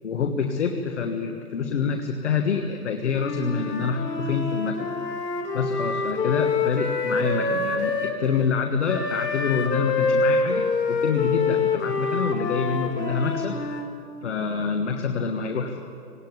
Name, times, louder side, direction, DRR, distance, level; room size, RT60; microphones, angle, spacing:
voice 1, 0.0-4.9 5.5-13.6 14.2-15.8, left 5 dB, 45° left, 4 dB, 1.5 m, -26 dB
Wind instrument woodwind instrument, 3.2-8.2 8.9-13.9, left 3 dB, 85° left, 3.2 m, -26 dB
19.0 x 18.5 x 9.5 m, 2.7 s
hypercardioid pair, 160°, 48 cm